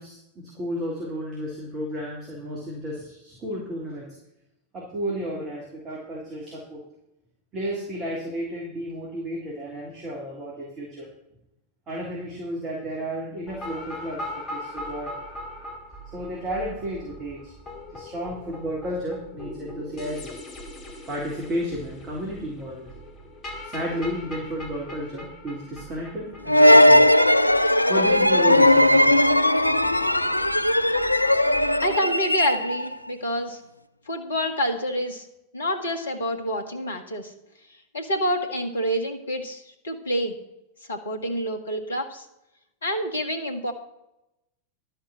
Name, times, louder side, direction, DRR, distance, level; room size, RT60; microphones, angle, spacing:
voice 1, 0.0-4.1 4.7-6.9 7.5-11.1 11.9-15.1 16.1-17.5 17.9-20.3 21.1-22.9 23.6-27.1 27.9-29.2, equal, 30° right, -3 dB, 3.2 m, -32 dB
sound 1, 13.5-32.0, left 1 dB, 25° left, 2.2 m, -40 dB
sound 2, 26.5-32.9, left 1 dB, 85° left, 0.3 m, -18 dB
voice 2, 31.8-33.6 34.1-35.3 35.5-37.3 37.9-40.4 40.9-42.2 42.8-43.7, equal, 70° left, 5 dB, 1.4 m, -27 dB
11.5 x 5.8 x 7.8 m, 0.85 s
figure-of-eight pair, 90°, 0 cm